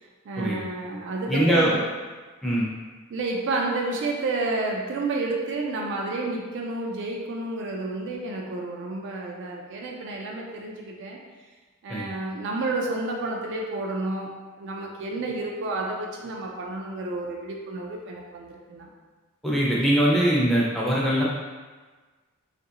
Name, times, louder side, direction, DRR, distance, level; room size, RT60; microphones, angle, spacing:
voice 1, 0.3-1.8 3.1-11.2 11.8-14.3 14.6-18.9, right 2 dB, 55° right, 0 dB, 0.4 m, -30 dB
voice 2, 1.3-1.7 2.4-2.6 11.9-12.0 19.4-21.2, right 1 dB, ahead, -7 dB, 0.5 m, -22 dB
3.0 x 2.5 x 2.8 m, 1.4 s
head